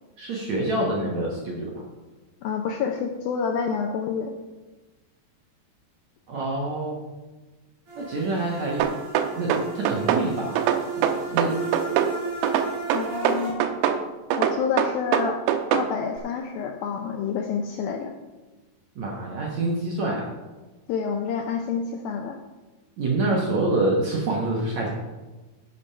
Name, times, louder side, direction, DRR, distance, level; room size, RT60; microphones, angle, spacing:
voice 1, 0.2-1.8 6.3-7.0 8.0-8.9 9.4-10.6 11.0-11.6 19.0-20.3 23.0-24.9, right 2 dB, 60° right, -2 dB, 1.9 m, -26 dB
voice 2, 2.4-4.3 12.9-13.6 14.4-15.4 15.7-18.1 20.9-22.4, left 6 dB, 80° left, 3 dB, 2.1 m, -28 dB
sound 1, 7.9-13.5, right 4 dB, 40° right, 3.0 m, -34 dB
sound 2, 8.8-10.3 10.6-12.1 12.4-14.0 14.3-15.9, right 9 dB, 90° right, 2.9 m, -22 dB
10.5 x 7.2 x 5.6 m, 1.2 s
omnidirectional pair, 5.0 m